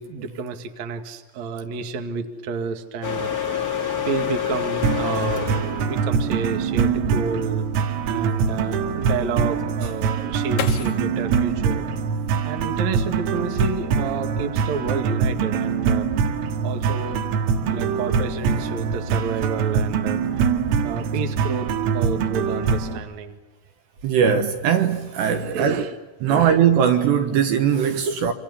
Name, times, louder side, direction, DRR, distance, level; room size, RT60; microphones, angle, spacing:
voice 1, 0.0-5.6 5.8-7.7 8.1-11.9 12.4-16.4 16.6-17.2 17.7-23.4 25.3-25.9 26.3-26.6 28.0-28.3, right 5 dB, 50° right, 2.4 m, -30 dB
sound 1, 3.0-9.6, left 8 dB, 35° left, 1.4 m, -29 dB
sound 2, 4.8-23.0, right 6 dB, 85° right, 4.2 m, -23 dB
sound 3, 9.6-12.7 13.2-13.9 14.2-14.7, left 7 dB, 70° left, 1.8 m, -35 dB
voice 2, 24.0-25.9 26.2-28.3, right 8 dB, 70° right, 3.1 m, -20 dB
27.0 x 26.5 x 7.1 m
omnidirectional pair, 5.7 m